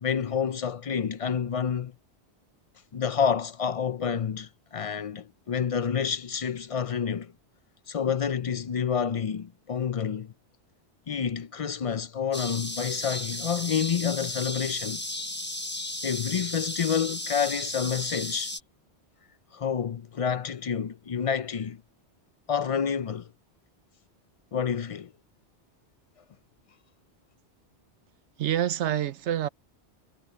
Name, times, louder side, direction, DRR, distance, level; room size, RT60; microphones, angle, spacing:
voice 1, 0.0-1.9 2.9-7.3 7.9-10.3 11.1-15.0 16.0-18.5 19.5-21.8 22.5-23.3 24.5-25.1, left 7 dB, 50° left, 0.4 m, -28 dB
sound 1, 12.3-18.6, left 1 dB, 10° left, 1.0 m, -34 dB
voice 2, 28.4-29.5, right 11 dB, 85° right, 1.0 m, -27 dB
omnidirectional pair, 1.2 m